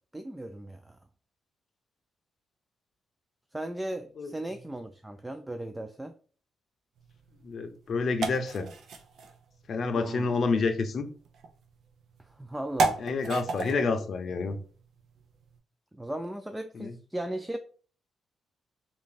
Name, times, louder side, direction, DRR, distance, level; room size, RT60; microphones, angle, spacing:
voice 1, 0.1-1.0 3.5-6.1 9.9-10.3 12.3-13.0 15.9-17.6, right 1 dB, 10° right, 8 dB, 0.3 m, -37 dB
sound 1, 7.0-15.6, right 3 dB, 70° right, 0.5 m, -36 dB
voice 2, 7.4-8.7 9.7-11.1 13.0-14.6 16.7-16.9, left 4 dB, 55° left, 7 dB, 0.6 m, -28 dB
3.4 x 2.5 x 3.9 m, 0.41 s
cardioid pair, 85°, 0 cm